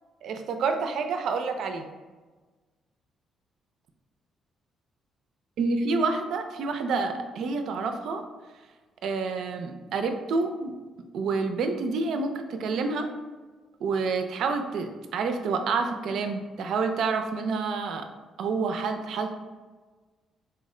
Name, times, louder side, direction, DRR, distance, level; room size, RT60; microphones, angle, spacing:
voice 1, 0.2-1.9 5.6-8.2 9.0-10.7 11.1-13.1 13.8-18.0 18.4-19.3, right 4 dB, 75° right, 6 dB, 0.4 m, -28 dB
4.2 x 2.1 x 3.6 m, 1.3 s
cardioid pair, 90°, 0 cm